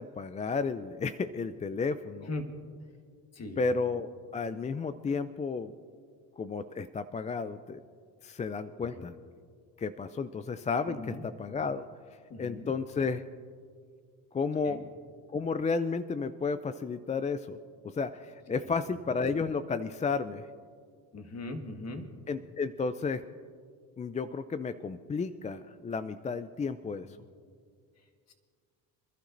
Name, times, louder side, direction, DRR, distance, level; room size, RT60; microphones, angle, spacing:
voice 1, 0.0-2.3 3.6-5.7 6.4-7.8 8.2-9.2 9.8-11.9 12.4-13.2 14.3-14.8 15.3-17.6 17.8-20.5 22.3-23.2 24.0-27.2, left 4 dB, 20° left, 12 dB, 0.3 m, -32 dB
voice 2, 10.9-11.2 12.3-12.7 14.6-14.8 21.1-22.1 28.3-28.4, left 2 dB, 40° left, 5 dB, 1.7 m, -39 dB
27.0 x 11.5 x 2.6 m, 2.1 s
supercardioid pair, 80°, 40 cm